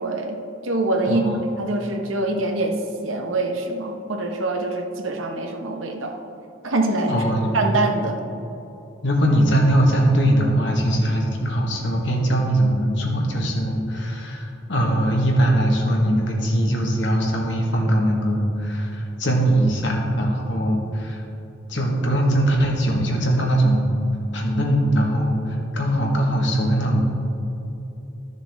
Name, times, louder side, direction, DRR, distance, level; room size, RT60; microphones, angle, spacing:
voice 1, 0.0-6.2 6.6-7.2 7.5-8.2, right 2 dB, 80° right, 3 dB, 1.0 m, -24 dB
voice 2, 1.0-1.4 7.1-7.5 9.0-21.2 21.7-23.9 24.3-27.0, right 1 dB, 65° left, 0 dB, 1.5 m, -21 dB
13.0 x 6.8 x 3.5 m, 3.0 s
head